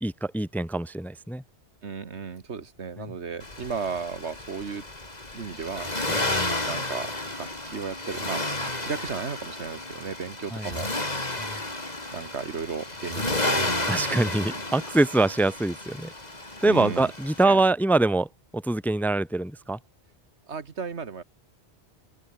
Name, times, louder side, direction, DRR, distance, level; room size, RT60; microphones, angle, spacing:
voice 1, 0.0-1.4 6.1-6.5 10.5-10.7 11.4-11.5 13.9-16.1 16.6-19.8, right 2 dB, ahead, 0.8 m, -24 dB
voice 2, 1.8-4.9 5.3-5.9 6.3-10.9 12.1-14.3 16.6-17.1 17.4-17.6 20.5-21.2, right 5 dB, 85° right, 1.9 m, -35 dB
Accelerating revving vroom, 3.4-17.4, left 2 dB, 40° left, 3.5 m, -32 dB
open air
omnidirectional pair, 1.1 m